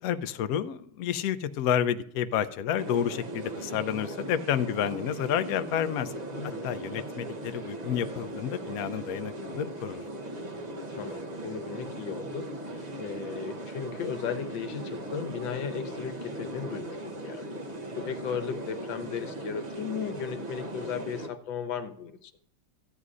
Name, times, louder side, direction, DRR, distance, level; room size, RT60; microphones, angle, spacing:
voice 1, 0.0-6.1 6.6-10.0, left 9 dB, 65° left, 10 dB, 0.9 m, -30 dB
sound 1, 2.8-21.3, right 1 dB, 30° right, 0.8 m, -38 dB
voice 2, 11.0-17.5 17.9-22.3, left 7 dB, 85° left, 10 dB, 1.6 m, -36 dB
14.5 x 9.5 x 2.5 m, 0.64 s
omnidirectional pair, 2.0 m